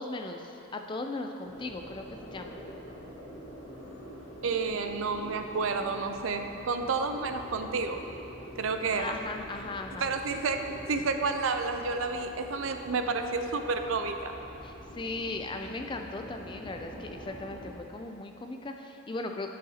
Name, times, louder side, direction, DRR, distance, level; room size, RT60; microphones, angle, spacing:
voice 1, 0.0-2.6 9.0-10.1 14.6-19.5, left 2 dB, 25° left, 5 dB, 0.3 m, -38 dB
sound 1, 1.4-17.7, equal, 70° left, 1.4 m, -46 dB
voice 2, 4.4-8.0 8.6-9.2 10.0-14.3, right 4 dB, 80° right, 7 dB, 0.5 m, -30 dB
12.5 x 6.3 x 2.8 m, 3.0 s
head